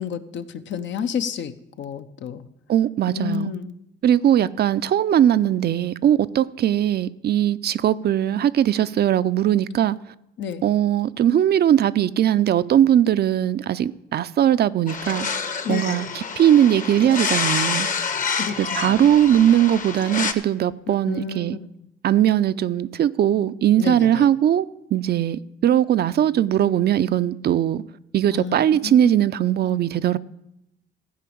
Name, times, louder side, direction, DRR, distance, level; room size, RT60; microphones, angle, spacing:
voice 1, 0.0-2.5 3.1-3.8 10.4-10.6 15.6-16.1 18.4-19.0 20.9-21.7 23.8-24.3 28.3-29.2 29.6-29.8, left 7 dB, 70° left, 0.8 m, -31 dB
voice 2, 2.7-3.5 4.0-10.0 10.6-15.3 15.7-17.9 18.6-21.6 22.0-27.8 28.1-30.2, right 10 dB, 55° right, 0.5 m, -20 dB
sound 1, 14.9-20.3, left 5 dB, 40° left, 1.1 m, -27 dB
15.5 x 5.1 x 8.4 m
cardioid pair, 90°, 20 cm